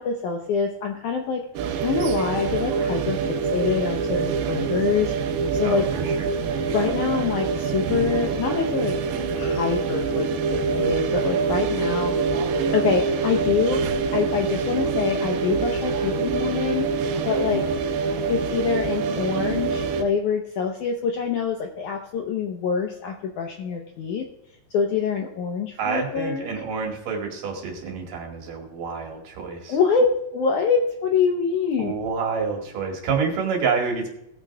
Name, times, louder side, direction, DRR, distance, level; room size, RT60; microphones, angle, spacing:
voice 1, 0.0-1.5 1.8-3.2 3.5-5.1 5.5-5.8 6.7-8.9 9.4-12.1 12.7-13.8 14.1-16.9 17.3-17.6 18.3-24.3 24.7-26.6 29.7-31.9, left 6 dB, 75° left, 3 dB, 1.9 m, -25 dB
sound 1, 1.6-20.0, right 5 dB, 80° right, 2.9 m, -25 dB
voice 2, 5.6-6.4 25.8-29.8 31.8-34.1, right 5 dB, 60° right, 1 dB, 3.4 m, -28 dB
18.0 x 9.2 x 2.3 m, 0.82 s
omnidirectional pair, 4.5 m